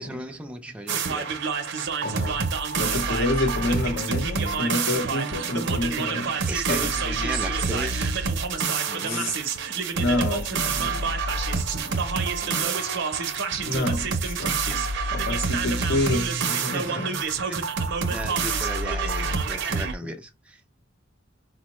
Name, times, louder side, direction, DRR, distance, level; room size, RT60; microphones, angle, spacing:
voice 1, 0.0-1.3 6.5-8.1 8.9-9.4 11.4-12.0 12.4-13.0 16.7-17.0 17.5-17.7 18.1-20.8, right 1 dB, 5° right, 0.3 m, -36 dB
sound 1, 0.9-20.0, right 4 dB, 65° right, 0.6 m, -27 dB
voice 2, 2.0-2.5 2.8-6.4 6.7-6.9 9.0-9.3 9.9-11.2 13.6-17.2, left 1 dB, 65° left, 0.8 m, -28 dB
4.4 x 2.1 x 2.9 m
head